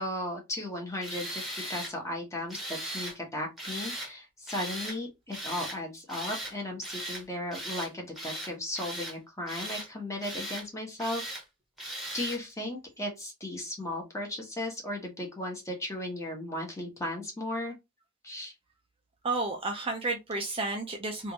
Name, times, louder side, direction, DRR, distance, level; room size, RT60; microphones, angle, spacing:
voice 1, 0.0-11.3 12.1-17.7 18.2-18.5, left 1 dB, 15° left, 1.2 m, -36 dB
Tools, 1.0-1.9 2.5-3.2 3.6-4.1 4.5-5.0 5.3-5.8 6.1-6.5 6.8-7.2 7.5-7.9 8.2-9.2 9.5-9.9 10.2-10.7 11.0-11.4 11.8-12.4, right 1 dB, ahead, 1.3 m, -38 dB
voice 2, 19.2-21.3, right 3 dB, 25° right, 0.6 m, -31 dB
3.4 x 2.6 x 3.0 m
head